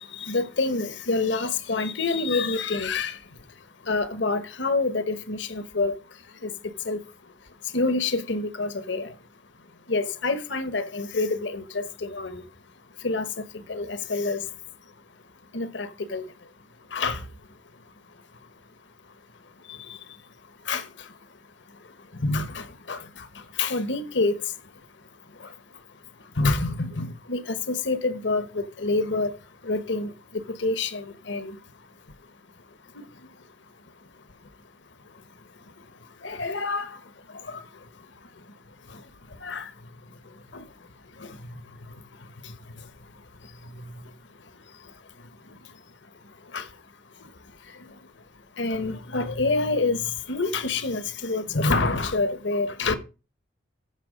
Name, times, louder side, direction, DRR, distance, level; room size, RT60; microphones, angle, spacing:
voice 1, 0.0-9.2 9.6-12.6 13.0-14.9 15.5-18.5 19.0-32.3 32.7-34.6 35.0-53.0, left 3 dB, 65° left, 1.1 m, -30 dB
14.5 x 6.1 x 5.1 m
head